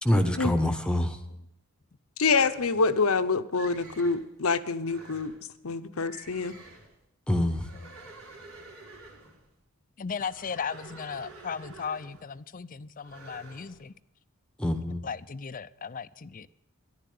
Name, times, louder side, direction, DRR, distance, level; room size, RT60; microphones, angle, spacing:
voice 1, 0.0-1.2 7.3-7.7 14.6-15.0, left 1 dB, 5° left, 1.0 m, -25 dB
voice 2, 0.9-1.4 5.1-5.7 7.7-8.1 10.0-13.9 15.0-16.5, left 6 dB, 40° left, 0.6 m, -37 dB
voice 3, 2.2-5.3 5.6-6.6, left 4 dB, 75° left, 0.9 m, -26 dB
sound 1, 2.3-3.1 3.5-4.3 4.8-5.4 6.0-7.0 7.5-9.4 10.2-12.4 13.0-13.8, right 3 dB, 80° right, 3.8 m, -49 dB
14.0 x 11.0 x 8.4 m
head